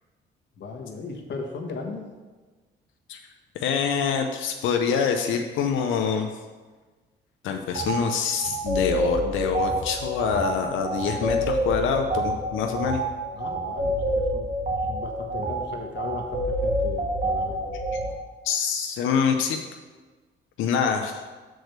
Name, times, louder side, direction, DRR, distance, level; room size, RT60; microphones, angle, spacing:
voice 1, 0.6-2.1 13.3-14.5 14.9-17.6, left 4 dB, 65° left, 2 dB, 1.3 m, -36 dB
voice 2, 3.5-6.3 7.4-13.0 18.4-19.6 20.6-21.2, left 6 dB, 85° left, 4 dB, 0.7 m, -25 dB
sound 1, 7.7-7.9 8.4-18.1, right 1 dB, 40° right, 1.5 m, -27 dB
6.3 x 4.6 x 6.6 m, 1.3 s
cardioid pair, 90°, 20 cm